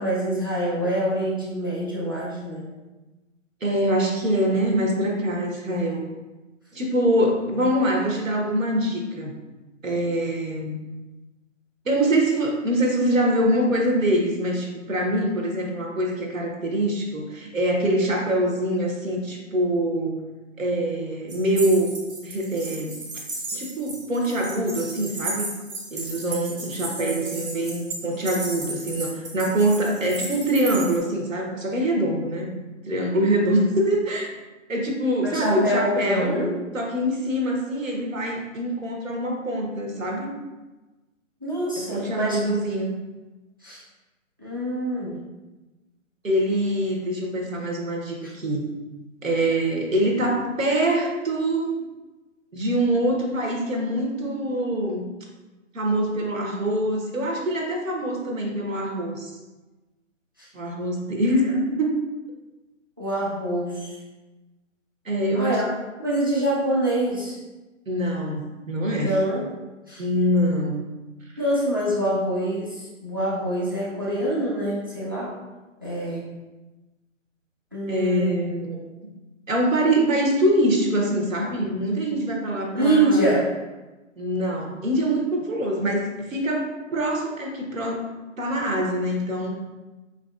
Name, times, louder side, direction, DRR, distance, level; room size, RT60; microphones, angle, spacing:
voice 1, 0.0-2.6 5.4-5.8 27.0-27.3 35.2-36.6 41.4-42.4 43.6-43.8 44.4-45.1 63.0-63.9 65.3-65.7 66.0-67.4 69.0-69.4 69.9-70.0 71.4-75.3 75.8-76.2 77.7-78.3 82.7-83.5, right 1 dB, 20° right, -7 dB, 0.4 m, -25 dB
voice 2, 3.6-6.0 6.7-9.3 9.8-10.8 11.8-20.2 20.6-21.9 22.2-22.9 23.5-25.5 25.9-32.5 32.8-34.3 34.7-36.4 36.7-40.3 41.8-42.9 46.2-48.6 49.2-51.8 52.5-55.0 55.7-59.3 60.5-61.9 65.0-65.6 67.9-69.1 70.0-70.8 77.9-78.9 79.5-83.3 84.2-88.1 88.4-89.5, right 1 dB, 80° right, 0 dB, 1.0 m, -24 dB
sound 1, 21.3-31.0, right 2 dB, 45° right, 0.8 m, -34 dB
4.7 x 2.6 x 2.3 m, 1.1 s
figure-of-eight pair, 145°, 39 cm